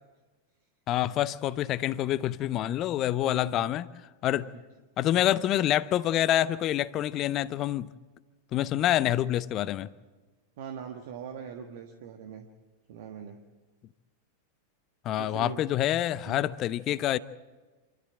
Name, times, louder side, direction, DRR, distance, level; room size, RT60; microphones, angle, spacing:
voice 1, 0.9-3.9 4.2-4.5 5.0-7.9 8.5-9.9 15.0-17.2, left 12 dB, 35° left, 0.6 m, -27 dB
voice 2, 3.2-3.7 10.6-12.5 12.9-13.4 15.1-15.6 16.2-16.4, right 7 dB, 55° right, 1.5 m, -42 dB
27.5 x 13.0 x 7.7 m
figure-of-eight pair, 90°, 0 cm